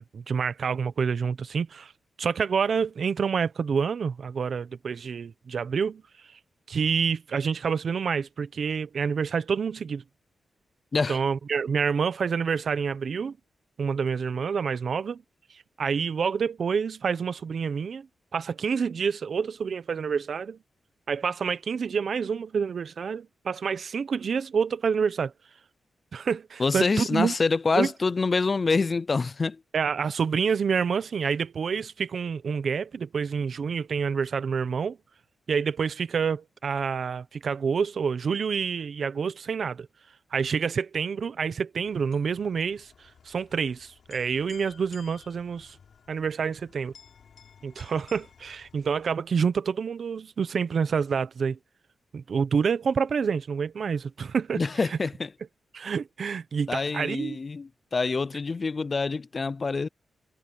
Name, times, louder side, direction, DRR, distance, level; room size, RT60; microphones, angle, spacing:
voice 1, 0.0-1.9 2.2-6.0 6.7-10.0 11.1-13.4 13.8-15.2 15.8-18.1 18.3-20.6 21.1-25.3 26.1-27.3 27.8-27.9 29.7-35.0 35.5-39.9 40.3-42.9 43.2-45.8 46.1-46.9 47.6-51.6 52.1-54.6 55.7-57.4, right 6 dB, 60° right, 0.9 m, -28 dB
voice 2, 26.6-29.6 54.6-55.3 56.7-59.9, left 4 dB, 35° left, 0.4 m, -26 dB
sound 1, 41.8-49.3, left 7 dB, 70° left, 6.9 m, -55 dB
wide cardioid pair, 110°, 0 cm